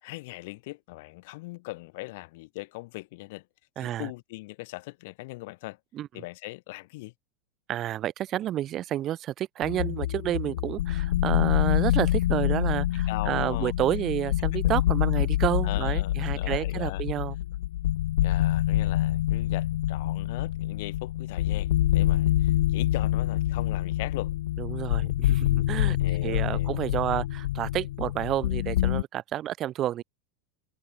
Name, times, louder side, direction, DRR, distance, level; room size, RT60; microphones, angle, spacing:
voice 1, 0.0-3.5 3.8-5.8 6.1-7.1 13.1-13.7 14.6-14.8 15.6-17.0 18.2-24.3 26.0-26.9, left 22 dB, 60° left, 3.7 m, -40 dB
voice 2, 3.8-4.1 5.9-6.1 7.7-17.3 24.6-26.0 26.2-30.0, right 12 dB, 35° right, 5.1 m, -30 dB
sound 1, 9.6-29.0, left 14 dB, 80° left, 1.3 m, -26 dB
supercardioid pair, 140°, 0 cm